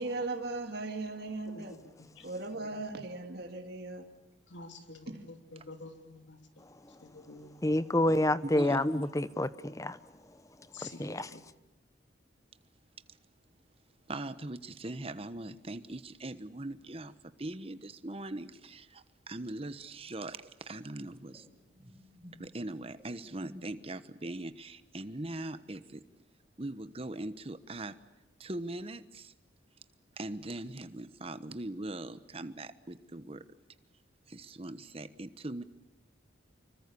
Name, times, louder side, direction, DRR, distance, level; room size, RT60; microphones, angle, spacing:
voice 1, 0.0-1.7 2.2-4.1 5.1-5.2, right 2 dB, 55° right, 2.0 m, -38 dB
voice 2, 1.5-2.7 4.5-6.4 7.0-7.9 10.7-11.4, left 3 dB, 70° left, 3.1 m, -49 dB
voice 3, 7.6-10.0 10.8-11.3, left 1 dB, 15° left, 0.8 m, -28 dB
voice 4, 8.4-8.8 13.1-13.2 14.1-21.5 22.4-26.0 26.6-28.0 28.4-29.3 30.2-33.4 34.3-35.6, right 2 dB, 30° right, 1.2 m, -41 dB
sound 1, 17.7-28.3 28.6-30.2 30.5-34.3, left 1 dB, 15° right, 4.6 m, -59 dB
26.5 x 24.0 x 6.9 m
head